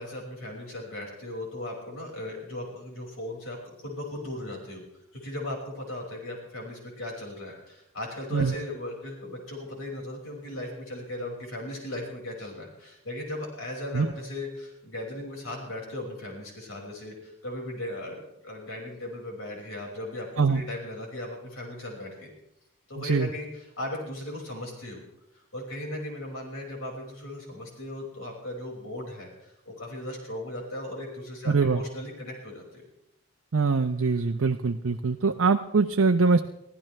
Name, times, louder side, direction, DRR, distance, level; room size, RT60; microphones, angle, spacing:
voice 1, 0.0-4.8 5.1-22.3 22.9-25.0 25.5-32.8, left 1 dB, 75° left, -1 dB, 5.6 m, -37 dB
voice 2, 23.0-23.3 31.5-31.8 33.5-36.4, right 4 dB, 75° right, 4 dB, 0.7 m, -23 dB
24.0 x 15.5 x 3.3 m, 0.83 s
head